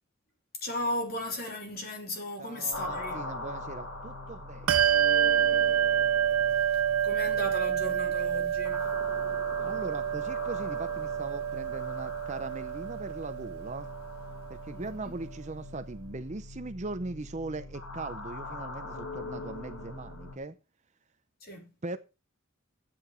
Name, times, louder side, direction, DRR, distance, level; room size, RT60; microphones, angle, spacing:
voice 1, 0.6-3.2 6.5-8.9 14.7-15.1 21.4-21.7, left 1 dB, 45° left, 3.5 m, -36 dB
voice 2, 2.4-4.9 5.3-5.7 9.6-13.9 14.5-20.6 21.8-22.0, right 2 dB, 35° right, 0.6 m, -40 dB
sound 1, 2.7-20.3, left 2 dB, 65° left, 2.1 m, -42 dB
Bell, 4.7-14.7, right 9 dB, 75° right, 0.5 m, -28 dB
12.0 x 8.6 x 4.5 m
head